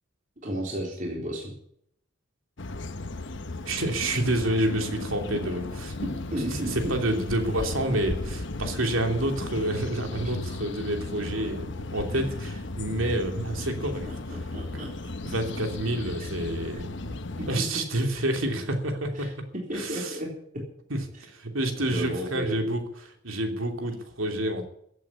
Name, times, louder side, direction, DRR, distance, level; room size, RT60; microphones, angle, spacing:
voice 1, 0.4-1.5 6.0-6.9 12.1-12.2 14.1-15.1 16.0-16.3 17.0-17.5 19.1-19.3 19.7-20.3 21.8-22.6, equal, 40° right, -2 dB, 3.8 m, -34 dB
sound 1, 2.6-17.6, left 2 dB, 60° left, 1.0 m, -35 dB
voice 2, 3.6-6.2 6.5-14.4 15.2-16.9 17.5-19.4 19.7-20.2 20.9-24.7, right 1 dB, 90° right, 4 dB, 3.0 m, -29 dB
15.0 x 8.5 x 9.9 m, 0.70 s
head